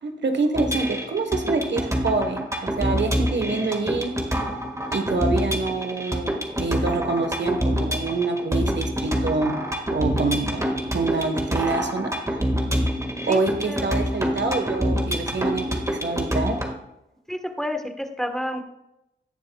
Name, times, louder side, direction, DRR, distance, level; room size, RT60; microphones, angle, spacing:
voice 1, 0.0-4.1 4.9-9.5 9.9-10.7 10.9-12.4 13.3-16.6, right 3 dB, 70° right, 6 dB, 1.3 m, -26 dB
sound 1, 0.6-16.7, equal, 15° right, 1.8 m, -26 dB
voice 2, 13.2-13.9 17.3-18.6, equal, ahead, 5 dB, 1.2 m, -30 dB
18.0 x 6.5 x 2.3 m, 0.86 s
wide cardioid pair, 75°, 19 cm